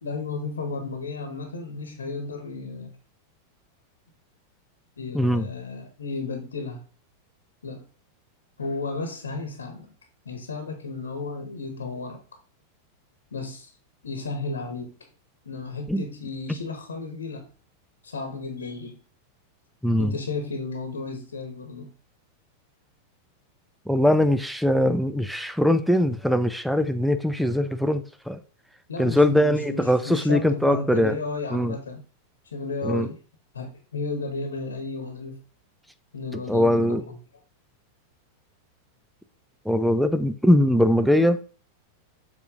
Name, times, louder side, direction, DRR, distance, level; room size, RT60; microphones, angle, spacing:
voice 1, 0.0-2.9 5.0-6.8 7.6-7.8 8.6-9.9 10.2-12.2 13.3-13.7 14.0-14.9 15.4-17.5 18.0-19.0 20.0-21.9 28.9-32.0 32.5-33.2 33.5-35.4 36.1-37.2, left 3 dB, 70° left, 1.2 m, -33 dB
voice 2, 5.1-5.5 15.9-16.0 19.8-20.1 23.9-28.4 29.0-31.1 31.5-31.8 32.8-33.1 36.3-37.0 39.6-41.4, left 1 dB, ahead, 0.6 m, -21 dB
7.0 x 4.2 x 3.7 m
figure-of-eight pair, 90°, 0 cm